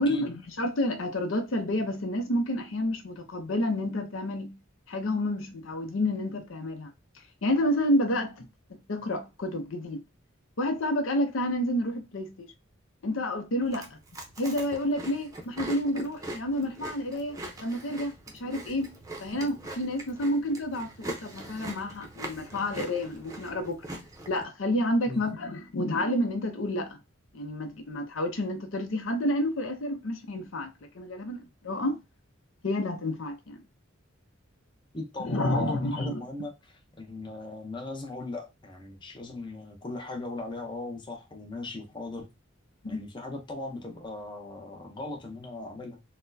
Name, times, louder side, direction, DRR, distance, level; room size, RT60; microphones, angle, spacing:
voice 1, 0.0-4.5 4.9-6.9 7.4-10.0 10.6-12.5 13.0-14.0 14.4-18.9 19.2-23.8 24.3-27.0 27.3-32.0 32.6-33.6 35.2-36.2 42.8-43.0, left 1 dB, 75° left, 0.6 m, -29 dB
Chewing mastication, 13.6-24.4, right 1 dB, 15° right, 0.6 m, -42 dB
voice 2, 34.9-42.3 42.9-46.0, left 2 dB, 25° left, 0.7 m, -38 dB
4.1 x 2.1 x 2.6 m
head